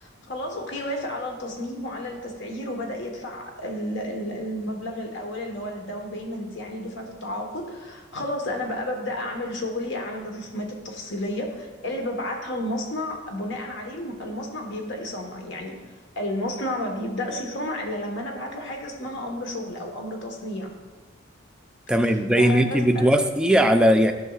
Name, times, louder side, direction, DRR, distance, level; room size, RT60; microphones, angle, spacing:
voice 1, 0.0-15.7 16.1-20.7 22.4-23.1, left 1 dB, 65° left, 2 dB, 1.2 m, -32 dB
voice 2, 21.9-24.1, equal, 5° right, 5 dB, 0.4 m, -19 dB
11.0 x 6.2 x 2.4 m, 1.4 s
head